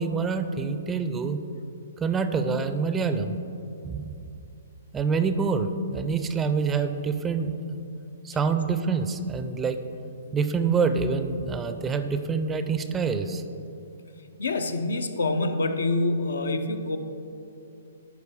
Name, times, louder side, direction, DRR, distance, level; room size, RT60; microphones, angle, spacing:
voice 1, 0.0-1.4 2.0-3.4 3.8-4.2 4.9-7.8 8.2-9.8 10.3-13.4, right 5 dB, 15° right, 9 dB, 0.4 m, -26 dB
voice 2, 14.4-17.0, left 2 dB, 75° left, 8 dB, 0.5 m, -26 dB
11.0 x 4.5 x 3.6 m, 2.7 s
hypercardioid pair, 125°, 0 cm